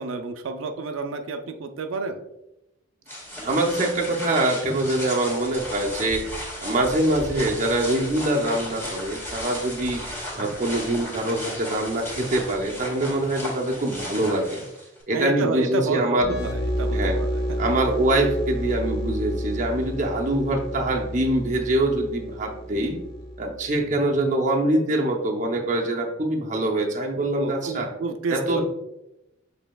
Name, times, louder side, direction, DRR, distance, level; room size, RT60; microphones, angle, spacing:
voice 1, 0.0-2.2 15.1-17.4 27.3-28.6, right 3 dB, 85° right, 5 dB, 0.4 m, -29 dB
sound 1, 3.1-15.0, left 1 dB, 15° left, 1.5 m, -35 dB
voice 2, 3.4-6.2 6.6-10.0 10.3-14.6 15.1-16.3 16.9-17.2 17.6-23.0 23.4-27.9 28.3-28.6, right 1 dB, 40° right, 1 dB, 0.6 m, -24 dB
sound 2, 16.2-23.7, equal, 55° left, 0.7 m, -30 dB
7.1 x 3.4 x 2.2 m, 0.89 s
head